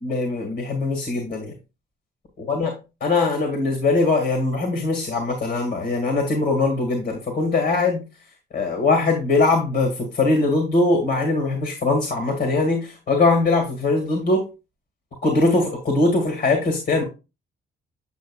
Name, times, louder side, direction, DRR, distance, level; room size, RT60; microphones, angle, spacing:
voice 1, 0.0-1.5 2.4-2.7 3.0-8.0 8.5-14.4 15.2-17.0, left 3 dB, 55° left, 3 dB, 2.1 m, -21 dB
8.2 x 6.2 x 2.4 m, 0.28 s
cardioid pair, 90°, 20 cm